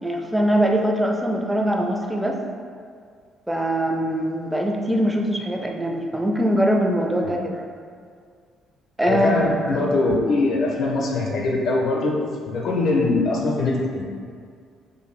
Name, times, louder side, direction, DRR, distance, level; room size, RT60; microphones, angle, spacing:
voice 1, 0.0-2.4 3.5-7.7 9.0-9.9, equal, 5° right, 1 dB, 0.4 m, -22 dB
voice 2, 9.1-12.2 12.5-14.0, left 2 dB, 65° left, -2 dB, 0.5 m, -22 dB
2.6 x 2.3 x 3.1 m, 2.1 s
supercardioid pair, 75°, 0 cm